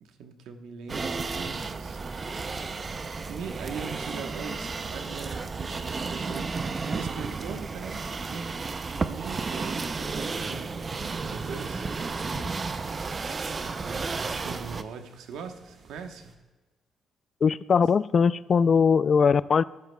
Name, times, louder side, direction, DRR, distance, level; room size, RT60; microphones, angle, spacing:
voice 1, 0.0-2.0 3.3-6.5 6.8-8.0 8.3-8.6 8.9-11.9 13.6-16.3, right 6 dB, 85° right, 6 dB, 1.0 m, -41 dB
sound 1, 0.9-14.8, right 4 dB, 35° right, 0.5 m, -33 dB
sound 2, 2.5-16.4, right 4 dB, 60° right, 1.3 m, -53 dB
voice 2, 17.4-19.6, left 6 dB, 45° left, 18 dB, 0.3 m, -21 dB
15.0 x 11.0 x 2.2 m, 1.2 s
cardioid pair, 90°, 0 cm